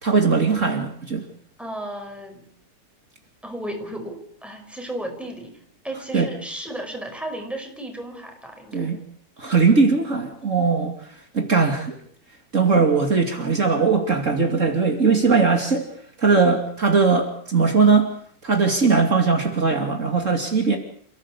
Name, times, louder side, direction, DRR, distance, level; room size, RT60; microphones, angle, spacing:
voice 1, 0.0-1.2 6.1-6.3 8.7-9.0 9.4-10.9 11.3-12.0 12.5-15.9 16.2-18.1 18.4-20.8, right 4 dB, 50° right, 3 dB, 3.1 m, -19 dB
voice 2, 1.6-2.4 3.4-5.6 5.8-8.9, right 1 dB, ahead, 4 dB, 5.3 m, -34 dB
29.0 x 17.0 x 8.4 m, 0.62 s
omnidirectional pair, 1.6 m